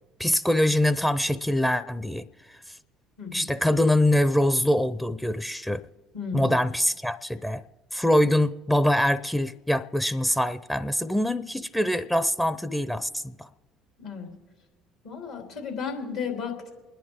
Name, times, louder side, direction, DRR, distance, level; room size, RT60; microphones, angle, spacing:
voice 1, 0.2-2.6 3.3-5.8 6.3-7.6 7.9-13.5, left 1 dB, 5° left, 13 dB, 0.6 m, -24 dB
voice 2, 3.2-3.5 6.1-6.6 14.0-14.3 15.0-16.7, left 6 dB, 75° left, 2 dB, 3.4 m, -34 dB
29.0 x 10.0 x 3.6 m, 1.3 s
hypercardioid pair, 65°, 0 cm